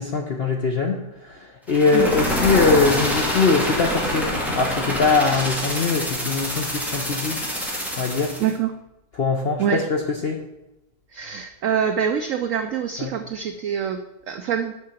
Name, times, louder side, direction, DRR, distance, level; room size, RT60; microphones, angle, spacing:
voice 1, 0.0-4.3 4.5-7.4 8.0-8.3 9.2-10.4 13.0-13.1, left 4 dB, 60° left, 2 dB, 0.6 m, -22 dB
sound 1, 1.7-8.5, equal, ahead, 1.7 m, -25 dB
voice 2, 8.4-8.7 9.6-9.8 11.1-14.0 14.3-14.7, right 8 dB, 80° right, 7 dB, 0.7 m, -25 dB
6.5 x 5.8 x 6.4 m, 0.92 s
omnidirectional pair, 1.9 m